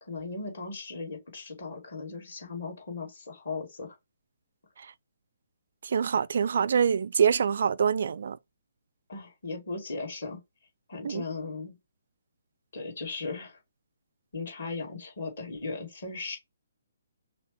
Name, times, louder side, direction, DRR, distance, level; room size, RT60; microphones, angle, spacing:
voice 1, 0.1-4.0 9.1-10.4 10.9-11.8 12.7-13.6 14.3-16.4, left 3 dB, 50° left, 2.3 m, -37 dB
voice 2, 5.8-8.4 11.0-11.2, right 7 dB, 55° right, 0.3 m, -25 dB
5.9 x 2.2 x 3.1 m
figure-of-eight pair, 135°, 0 cm